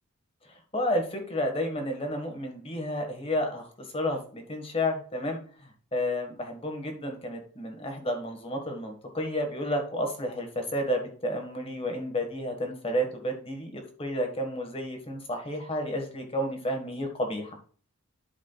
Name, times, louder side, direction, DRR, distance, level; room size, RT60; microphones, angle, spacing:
voice 1, 0.4-17.6, equal, 25° left, 3 dB, 1.5 m, -31 dB
12.0 x 4.9 x 2.3 m, 0.43 s
head